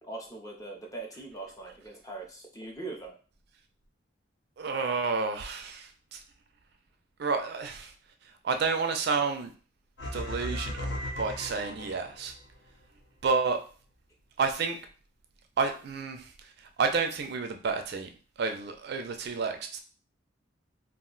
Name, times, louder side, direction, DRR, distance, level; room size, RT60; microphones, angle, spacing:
voice 1, 0.0-3.2 10.1-10.2, right 2 dB, 15° left, 1 dB, 0.5 m, -41 dB
voice 2, 4.6-6.2 7.2-7.9 8.4-9.5 10.1-12.3 13.2-13.6 14.4-14.8 15.6-18.1 18.4-19.8, right 4 dB, 55° right, 6 dB, 0.3 m, -30 dB
sound 1, 10.0-12.4, left 1 dB, 65° left, 0.7 m, -36 dB
2.4 x 2.0 x 3.7 m, 0.38 s
head